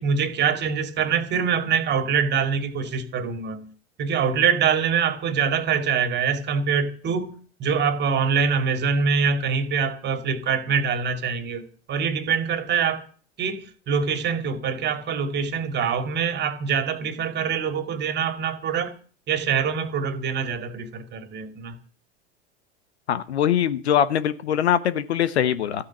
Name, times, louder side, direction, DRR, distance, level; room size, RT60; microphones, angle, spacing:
voice 1, 0.0-3.7 4.0-7.3 7.6-13.0 13.4-18.9 19.3-21.7, right 6 dB, 30° right, 2.4 m, -24 dB
voice 2, 23.1-25.9, left 9 dB, 65° left, 1.2 m, -22 dB
14.5 x 9.9 x 8.7 m
figure-of-eight pair, 90°, 34 cm